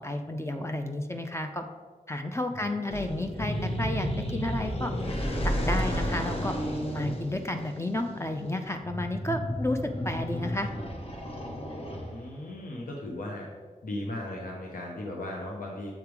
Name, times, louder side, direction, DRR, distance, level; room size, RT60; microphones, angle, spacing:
voice 1, 0.0-1.6 2.1-4.9 5.4-6.5 6.9-10.7, left 1 dB, 20° left, 5 dB, 0.5 m, -32 dB
sound 1, 2.9-12.4, equal, 45° left, 1.0 m, -32 dB
voice 2, 12.0-13.5 13.8-15.9, left 1 dB, 80° left, -2 dB, 0.8 m, -37 dB
7.4 x 3.4 x 4.6 m, 1.4 s
wide cardioid pair, 60°, 14 cm